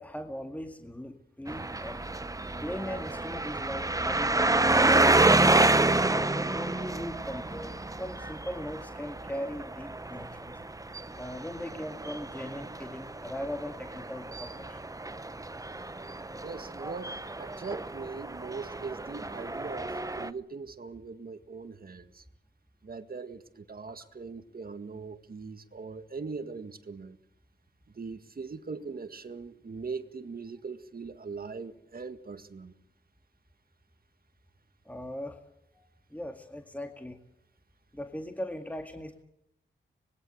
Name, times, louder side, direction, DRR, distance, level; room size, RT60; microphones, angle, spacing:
voice 1, 0.0-2.0 2.6-5.5 6.1-10.5 11.1-14.8 34.9-35.4 35.7-37.2 37.9-39.2, left 1 dB, 5° left, 2.0 m, -39 dB
sound 1, 1.5-20.3, right 2 dB, 15° right, 0.9 m, -29 dB
voice 2, 16.4-22.2 22.8-27.2 28.0-32.7, right 4 dB, 50° right, 1.9 m, -41 dB
25.5 x 21.0 x 8.0 m
wide cardioid pair, 80°, 20 cm